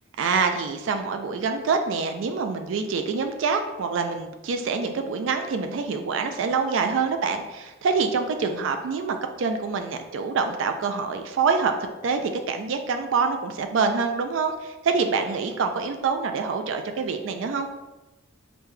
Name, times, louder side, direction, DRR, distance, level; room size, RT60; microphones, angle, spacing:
voice 1, 0.2-11.7 12.0-17.7, right 5 dB, 75° right, 6 dB, 0.3 m, -26 dB
5.1 x 2.2 x 3.2 m, 1.1 s
head